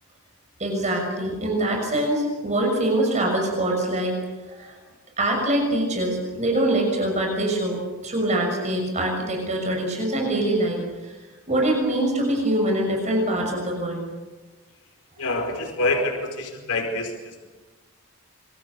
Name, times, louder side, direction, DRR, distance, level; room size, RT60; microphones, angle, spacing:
voice 1, 0.6-4.2 4.5-4.8 5.2-11.2 11.5-14.0, right 1 dB, 30° right, 1 dB, 6.3 m, -24 dB
voice 2, 15.2-17.5, left 2 dB, 90° left, 2 dB, 4.8 m, -26 dB
28.0 x 25.0 x 7.0 m, 1.2 s
head